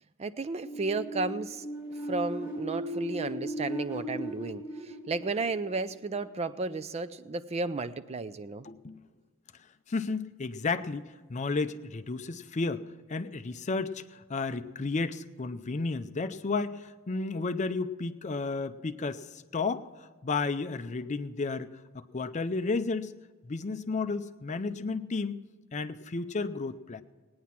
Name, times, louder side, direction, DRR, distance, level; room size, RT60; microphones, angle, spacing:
voice 1, 0.2-1.7 2.1-8.7, right 3 dB, 30° right, 13 dB, 0.4 m, -33 dB
sound 1, 0.6-6.3, right 1 dB, 10° right, 2.5 m, -37 dB
voice 2, 8.6-9.0 9.9-23.1 23.4-25.4 25.7-27.0, left 3 dB, 35° left, 12 dB, 0.5 m, -33 dB
19.0 x 9.5 x 5.8 m, 1.4 s
head